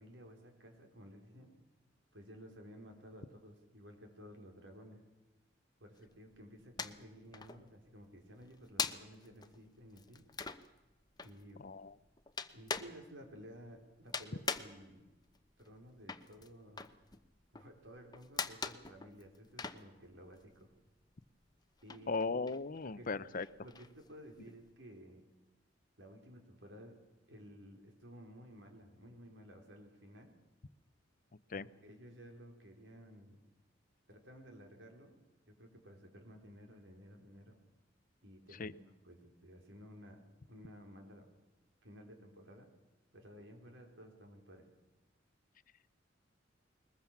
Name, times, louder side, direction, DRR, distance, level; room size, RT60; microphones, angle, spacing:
voice 1, 0.0-1.5 2.1-5.0 5.8-10.2 11.2-11.7 12.5-15.1 15.6-16.9 17.5-20.7 21.8-22.2 22.8-23.2 23.6-25.2 26.0-27.0 27.3-30.4 31.5-33.4 34.1-35.2 35.5-37.6 38.2-38.8 39.0-40.2 40.5-41.3 41.8-42.7 43.1-44.7, equal, 80° right, 4 dB, 4.0 m, -55 dB
sound 1, 6.0-7.1 7.3-20.7 21.0-24.7, left 5 dB, 20° left, 0.9 m, -43 dB
voice 2, 11.6-11.9 22.1-23.5 31.5-31.7 38.6-38.7, left 4 dB, 50° left, 17 dB, 0.7 m, -37 dB
21.5 x 20.0 x 7.3 m, 1.1 s
head